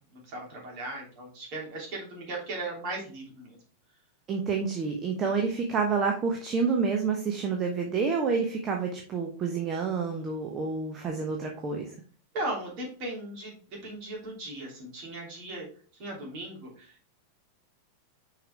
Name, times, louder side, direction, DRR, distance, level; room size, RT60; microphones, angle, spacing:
voice 1, 0.3-3.5 12.3-15.7 16.0-17.1, right 2 dB, 45° right, -2 dB, 3.0 m, -37 dB
voice 2, 4.3-11.9, right 5 dB, 25° right, 2 dB, 1.0 m, -28 dB
6.0 x 5.0 x 3.4 m, 0.42 s
figure-of-eight pair, 90°, 0 cm